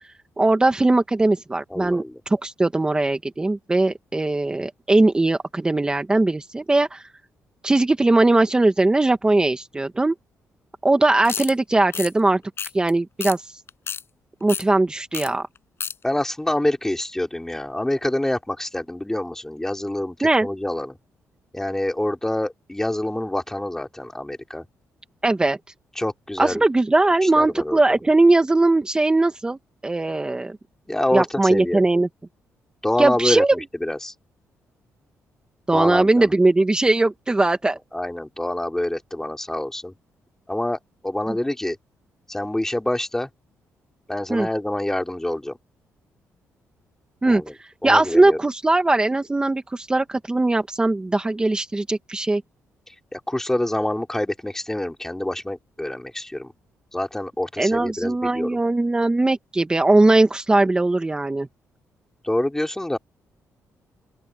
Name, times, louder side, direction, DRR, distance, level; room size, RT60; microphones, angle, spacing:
voice 1, 0.4-7.0 7.6-10.1 10.8-12.4 12.7-13.4 14.4-15.4 20.2-20.5 25.2-25.6 26.4-29.6 29.8-30.6 31.1-32.1 33.0-33.5 35.7-37.8 41.3-41.4 44.3-44.5 47.2-47.4 47.8-52.4 57.6-61.5, right 2 dB, 15° right, 1.3 m, -19 dB
voice 2, 1.7-2.2 16.0-20.9 21.5-24.7 26.0-26.6 27.2-28.0 30.9-31.8 32.8-34.1 35.7-36.3 37.9-39.9 40.5-41.8 42.3-43.3 44.1-45.6 47.2-47.5 47.8-48.4 53.1-56.5 56.9-58.6 62.2-63.0, left 1 dB, 10° left, 3.9 m, -26 dB
sound 1, 11.2-11.5 11.9-12.1 12.6-12.9 13.2-13.3 13.7-14.0 14.5-14.6 15.1-15.3 15.5-15.9, left 7 dB, 45° left, 6.3 m, -30 dB
open air
cardioid pair, 120°, 6 cm